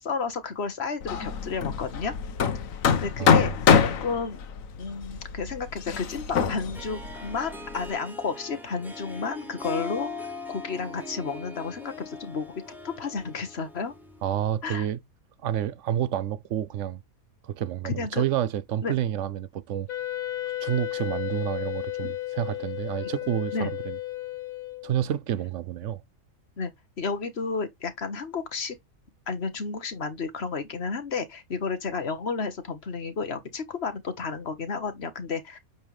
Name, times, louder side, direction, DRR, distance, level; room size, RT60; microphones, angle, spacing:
voice 1, 0.0-2.1 3.0-3.5 3.8-4.4 4.8-10.1 10.5-12.5 12.8-13.9 14.6-14.9 17.8-18.2 18.8-18.9 22.0-22.1 23.5-23.7 26.6-26.7 27.0-28.8 29.3-35.6, left 5 dB, 50° left, 1.6 m, -32 dB
Hammer, 1.0-7.9, left 6 dB, 75° left, 1.3 m, -25 dB
Harp, 6.7-14.4, left 3 dB, ahead, 2.9 m, -40 dB
voice 2, 14.2-15.0 15.4-17.0 17.4-19.9 20.6-24.0 24.8-26.0, right 11 dB, 65° right, 0.9 m, -29 dB
Wind instrument woodwind instrument, 19.9-25.1, left 15 dB, 90° left, 1.6 m, -33 dB
8.9 x 5.5 x 3.1 m
omnidirectional pair, 1.4 m